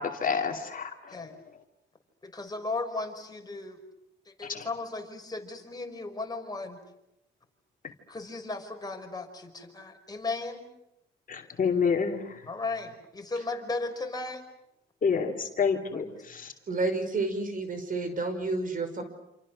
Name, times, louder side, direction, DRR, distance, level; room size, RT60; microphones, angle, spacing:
voice 1, 0.0-1.2 4.5-4.7 11.3-12.5 15.0-16.5, left 5 dB, 45° left, 3 dB, 2.8 m, -29 dB
voice 2, 2.2-3.8 4.3-6.8 8.1-10.6 12.5-14.4 15.9-16.0, left 3 dB, 20° left, 4 dB, 5.2 m, -36 dB
voice 3, 16.7-19.0, right 3 dB, 45° right, 8 dB, 5.3 m, -30 dB
28.0 x 28.0 x 6.5 m, 0.85 s
cardioid pair, 90°, 20 cm